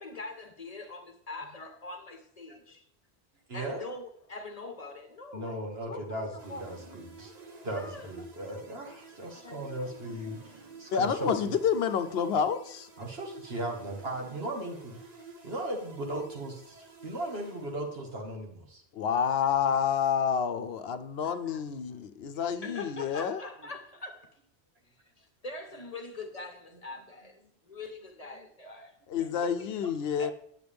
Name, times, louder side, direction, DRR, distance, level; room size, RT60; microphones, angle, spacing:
voice 1, 0.0-2.8 3.5-6.7 7.7-8.1 9.4-9.7 10.0-10.2 21.2-21.6 21.9-22.0 22.3-24.4 25.2-29.9 30.2-30.3, left 3 dB, 40° left, 4 dB, 1.0 m, -43 dB
voice 2, 3.5-3.8 5.3-7.3 7.6-11.5 13.0-15.0 15.4-18.8, right 1 dB, 70° right, 1 dB, 1.9 m, -37 dB
sound 1, 6.4-18.2, right 4 dB, 40° right, 1.1 m, -51 dB
voice 3, 10.9-12.9 18.9-23.4 29.1-30.3, left 7 dB, 70° left, 10 dB, 0.9 m, -28 dB
9.4 x 7.9 x 3.4 m, 0.69 s
omnidirectional pair, 1.1 m